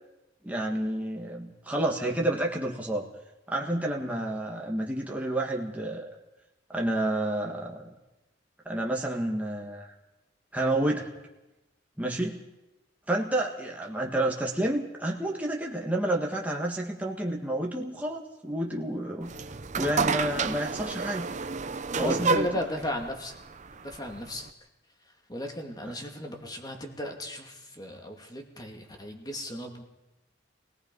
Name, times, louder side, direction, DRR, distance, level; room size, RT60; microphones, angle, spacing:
voice 1, 0.4-3.0 3.5-6.1 6.7-7.8 8.7-9.9 10.5-11.1 12.0-12.4 13.1-19.3 19.8-21.3 21.9-22.5, right 1 dB, 10° right, -1 dB, 1.7 m, -30 dB
sound 1, 19.2-24.5, right 4 dB, 40° right, 0.8 m, -30 dB
voice 2, 22.0-23.3 23.8-24.5 25.0-29.8, left 1 dB, 20° left, 3 dB, 2.5 m, -35 dB
26.0 x 18.0 x 5.4 m, 0.98 s
head